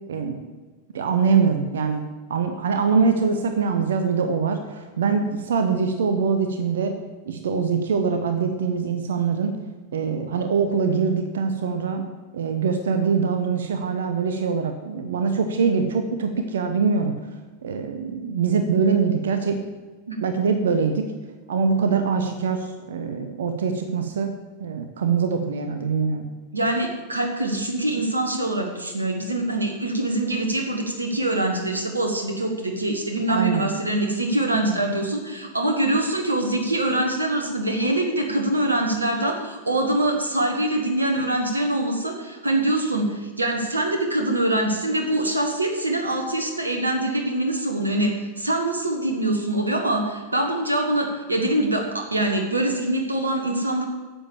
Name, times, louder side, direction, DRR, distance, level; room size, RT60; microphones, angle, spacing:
voice 1, 0.9-2.0 2.3-6.9 7.3-9.6 9.9-12.1 12.3-17.2 17.6-19.6 20.2-21.1 21.5-24.3 24.6-26.2 33.3-33.6, right 5 dB, 65° right, 7 dB, 0.9 m, -23 dB
voice 2, 26.5-53.8, right 1 dB, 80° right, 3 dB, 1.4 m, -24 dB
10.0 x 7.3 x 7.1 m, 1.4 s
figure-of-eight pair, 90°, 0 cm